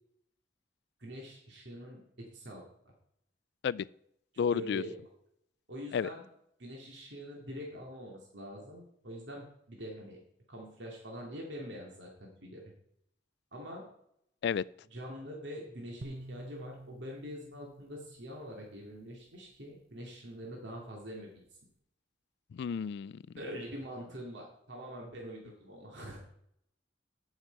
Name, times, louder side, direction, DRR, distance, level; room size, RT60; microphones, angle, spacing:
voice 1, 1.0-2.6 4.5-5.0 5.7-6.3 6.6-10.2 10.5-12.6 13.5-13.9 14.9-21.4 23.4-26.2, equal, 75° right, 2.4 m, -44 dB
voice 2, 4.4-4.8 5.9-6.1 14.4-14.6 22.5-23.2, left 7 dB, 65° left, 0.3 m, -31 dB
sound 1, 16.0-19.3, right 1 dB, 60° right, 0.7 m, -50 dB
15.0 x 6.6 x 4.6 m
head